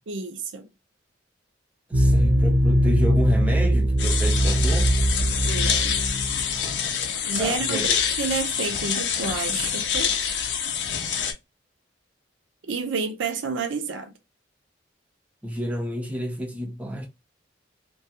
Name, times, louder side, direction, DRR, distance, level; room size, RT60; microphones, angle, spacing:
voice 1, 0.1-0.7 5.5-6.0 7.3-7.8 8.2-10.1 12.6-14.1, right 4 dB, 90° right, 0.5 m, -29 dB
voice 2, 1.9-5.0 7.4-8.0 15.4-17.1, equal, 10° right, 0.4 m, -29 dB
sound 1, 1.9-7.0, equal, 50° right, 0.7 m, -21 dB
sound 2, 4.0-11.3, left 7 dB, 70° left, 0.5 m, -26 dB
2.3 x 2.3 x 2.8 m
head